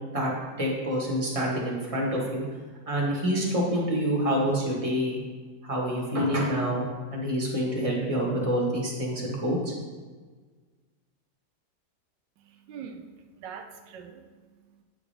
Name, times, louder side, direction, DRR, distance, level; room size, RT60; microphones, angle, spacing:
voice 1, 0.6-2.5 2.9-5.2 5.6-6.8 7.1-9.6, equal, 20° right, -3 dB, 1.4 m, -27 dB
voice 2, 12.4-14.8, right 7 dB, 85° right, 6 dB, 1.4 m, -44 dB
8.8 x 5.9 x 3.3 m, 1.4 s
omnidirectional pair, 1.9 m